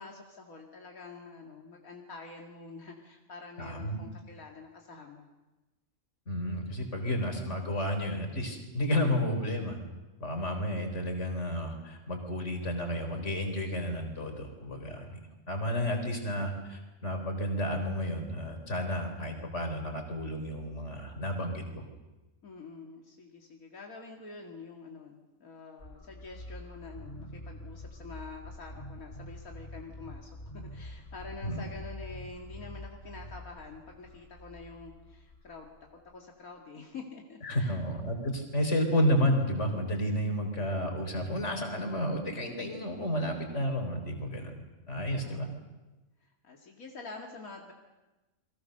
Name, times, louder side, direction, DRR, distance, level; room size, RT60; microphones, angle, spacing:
voice 1, 0.0-5.3 22.4-35.7 36.1-37.8 45.1-45.6 46.2-47.7, left 4 dB, 90° left, 0 dB, 2.7 m, -47 dB
voice 2, 3.6-4.0 6.3-9.8 10.2-15.2 15.5-21.8 31.4-31.6 37.4-44.6 44.9-45.5, equal, 55° left, 4 dB, 4.5 m, -31 dB
sound 1, 25.8-36.7, left 1 dB, 30° left, 3.6 m, -46 dB
29.0 x 22.5 x 6.7 m, 1.1 s
omnidirectional pair, 1.4 m